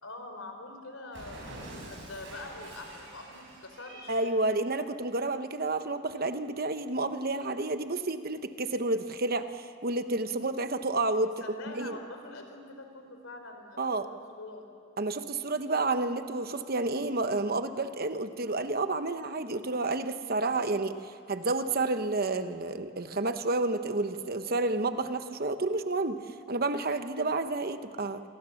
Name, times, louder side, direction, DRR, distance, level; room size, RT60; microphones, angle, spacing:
voice 1, 0.0-4.2 11.4-14.8, left 2 dB, 75° left, 5 dB, 3.9 m, -45 dB
Cat, 1.1-4.4, right 1 dB, 60° right, 6.9 m, -46 dB
voice 2, 4.1-11.3 11.7-12.0 13.8-14.1 15.0-26.2 26.5-28.2, right 2 dB, 45° right, 9 dB, 1.0 m, -30 dB
28.0 x 22.5 x 7.1 m, 2.5 s
head